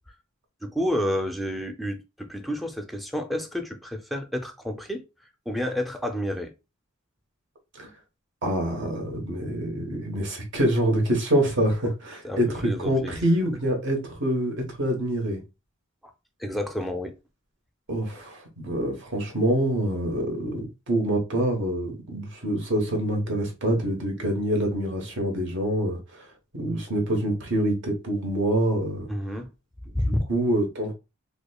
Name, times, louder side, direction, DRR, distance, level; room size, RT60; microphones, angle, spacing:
voice 1, 0.6-5.0 5.5-6.5 12.2-13.1 16.4-17.2 17.9-18.0 29.1-29.5 29.9-30.3, left 1 dB, ahead, 0.4 m, -30 dB
voice 2, 8.4-15.4 17.9-26.3 26.5-29.1 30.0-30.9, right 1 dB, 60° right, 1.1 m, -26 dB
4.9 x 2.1 x 2.3 m
head